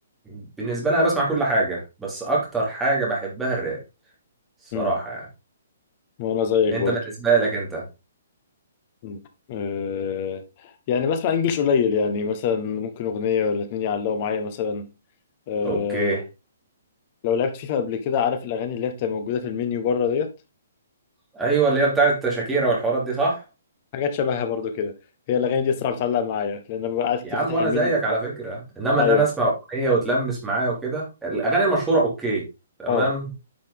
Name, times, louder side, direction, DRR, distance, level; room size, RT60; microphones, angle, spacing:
voice 1, 0.3-3.8 4.7-5.3 6.7-7.8 15.6-16.2 21.3-23.4 27.2-32.4 32.8-33.3, right 3 dB, 5° right, 3.0 m, -23 dB
voice 2, 6.2-7.0 9.0-9.2 9.5-14.9 15.5-16.2 17.2-20.3 23.9-24.9 25.3-27.9 28.9-29.2 32.9-33.1, left 7 dB, 25° left, 1.3 m, -25 dB
10.5 x 5.8 x 3.7 m
hypercardioid pair, 175°, 0 cm